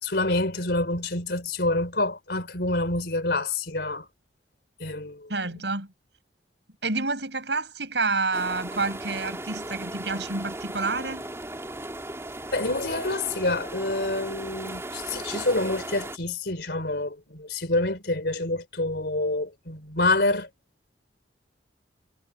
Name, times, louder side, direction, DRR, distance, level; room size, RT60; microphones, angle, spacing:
voice 1, 0.0-4.1 4.8-5.3 12.5-20.5, left 2 dB, 65° left, 4.3 m, -27 dB
voice 2, 5.3-5.9 6.8-11.3, right 3 dB, 75° right, 6.8 m, -28 dB
sound 1, 8.3-16.2, right 1 dB, 15° right, 3.1 m, -37 dB
head